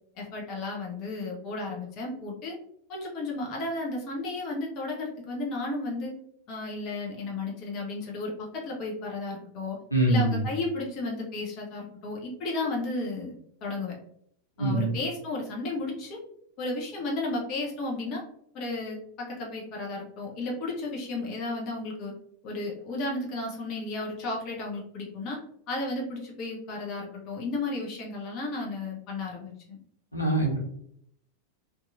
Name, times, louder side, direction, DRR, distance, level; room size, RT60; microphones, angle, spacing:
voice 1, 0.2-2.5 2.9-6.1 6.5-9.8 10.1-13.3 13.6-13.9 14.6-16.2 16.6-18.2 18.5-22.1 22.4-25.4 25.7-29.8, left 2 dB, 40° left, -2 dB, 0.6 m, -33 dB
voice 2, 9.9-10.4 14.6-15.0 30.1-30.6, right 2 dB, 85° left, -4 dB, 0.8 m, -24 dB
2.7 x 2.3 x 2.5 m, 0.70 s
figure-of-eight pair, 90°, 0 cm